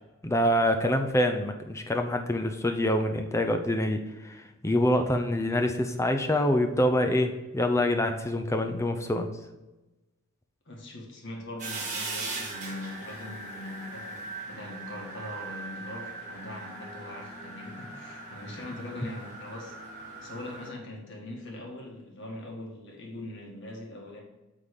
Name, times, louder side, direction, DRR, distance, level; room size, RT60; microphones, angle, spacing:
voice 1, 0.2-9.3, left 1 dB, 15° left, 5 dB, 0.5 m, -26 dB
voice 2, 10.7-19.8 20.2-24.2, left 1 dB, 55° left, 0 dB, 1.7 m, -41 dB
sound 1, 11.6-20.7, right 3 dB, 35° right, 1.5 m, -40 dB
8.1 x 3.8 x 5.2 m, 1.1 s
head